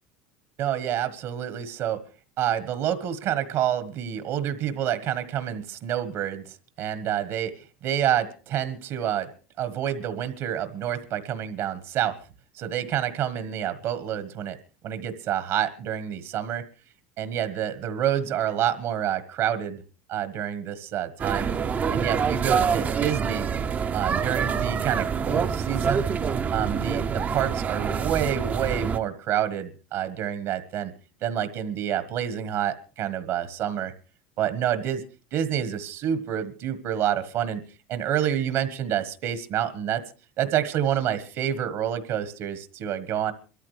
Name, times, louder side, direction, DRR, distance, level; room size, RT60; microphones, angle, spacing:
voice 1, 0.6-2.0 2.4-7.5 7.8-9.3 9.6-12.2 12.6-14.6 14.8-16.6 17.2-19.8 20.1-21.5 21.9-23.4 23.9-26.1 26.5-30.9 31.2-33.9 34.4-35.0 35.3-37.6 37.9-40.0 40.4-43.3, right 10 dB, 55° right, 12 dB, 1.4 m, -28 dB
sound 1, 21.2-29.0, right 6 dB, 25° right, 0.6 m, -26 dB
24.0 x 13.5 x 3.3 m, 0.35 s
supercardioid pair, 125°, 6 cm